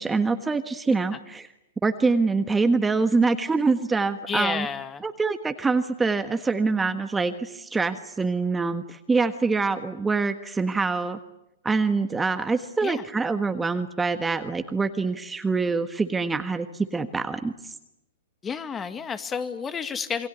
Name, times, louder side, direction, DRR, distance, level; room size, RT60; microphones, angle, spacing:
voice 1, 0.0-1.5 1.8-4.7 5.0-11.2 11.6-17.7, right 4 dB, 10° right, 8 dB, 1.5 m, -25 dB
voice 2, 4.3-5.0 12.8-13.0 18.4-20.3, left 6 dB, 20° left, 10 dB, 2.0 m, -30 dB
28.0 x 22.5 x 8.2 m, 0.88 s
hypercardioid pair, 115°, 0 cm